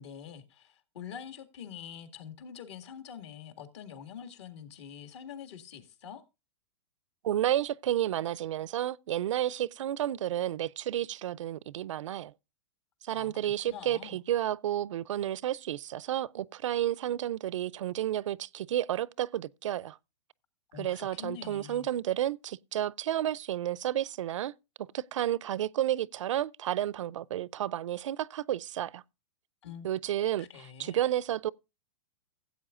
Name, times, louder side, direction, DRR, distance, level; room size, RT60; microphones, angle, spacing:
voice 1, 0.0-6.2 13.1-14.2 20.7-21.9 29.6-29.9 30.4-31.0, left 8 dB, 65° left, 1.9 m, -45 dB
voice 2, 7.2-12.3 13.0-20.0 20.8-24.5 24.9-29.0 29.8-30.5 30.8-31.5, right 12 dB, 80° right, 0.4 m, -31 dB
16.0 x 8.2 x 2.4 m
hypercardioid pair, 140°, 16 cm